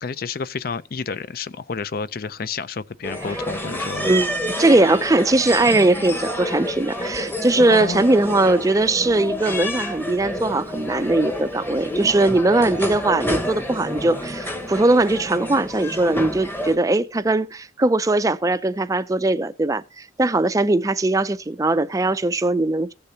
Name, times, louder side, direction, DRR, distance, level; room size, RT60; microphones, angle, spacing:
voice 1, 0.0-4.2 7.6-8.0, left 5 dB, 50° left, 0.4 m, -30 dB
sound 1, 3.0-16.8, equal, 10° left, 1.0 m, -29 dB
voice 2, 4.0-4.3 4.6-22.9, right 2 dB, 15° right, 0.4 m, -20 dB
16.5 x 6.7 x 2.8 m
head